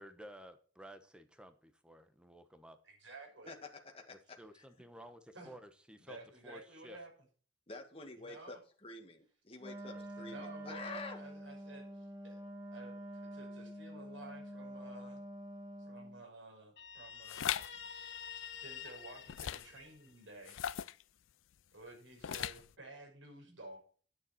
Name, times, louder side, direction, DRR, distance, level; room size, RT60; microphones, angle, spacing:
voice 1, 0.0-2.8 4.4-6.2 6.4-7.0 9.9-10.0, equal, 5° right, 9 dB, 1.1 m, -54 dB
voice 2, 2.8-3.5 5.3-5.5 6.1-7.1 8.2-8.6 10.2-12.4 12.7-13.0 13.3-15.2 15.8-17.7 18.0-18.1 18.6-20.5 21.7-23.8, right 2 dB, 80° right, 2 dB, 5.7 m, -53 dB
voice 3, 3.5-4.6 7.7-11.2, left 3 dB, 30° left, 3 dB, 1.8 m, -48 dB
Wind instrument woodwind instrument, 9.6-16.2, equal, 20° right, 1.8 m, -47 dB
Guitar, 16.8-20.3, left 7 dB, 60° left, 2.4 m, -48 dB
sound 1, 17.3-17.7 19.3-19.8 20.5-21.0 22.2-22.7, left 10 dB, 85° left, 0.4 m, -38 dB
10.5 x 9.6 x 4.3 m, 0.42 s
head